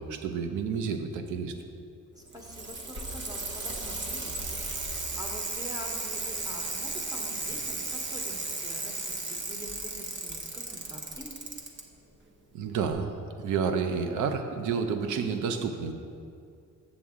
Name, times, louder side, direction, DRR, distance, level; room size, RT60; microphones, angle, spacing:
voice 1, 0.0-1.5 12.5-15.9, right 6 dB, 80° right, 6 dB, 0.7 m, -30 dB
voice 2, 2.1-11.3, equal, 15° right, 0 dB, 1.2 m, -45 dB
Bicycle, 2.2-11.8 12.9-13.0, right 3 dB, 40° right, 1.0 m, -35 dB
7.3 x 7.2 x 3.7 m, 2.5 s
cardioid pair, 90°, 30 cm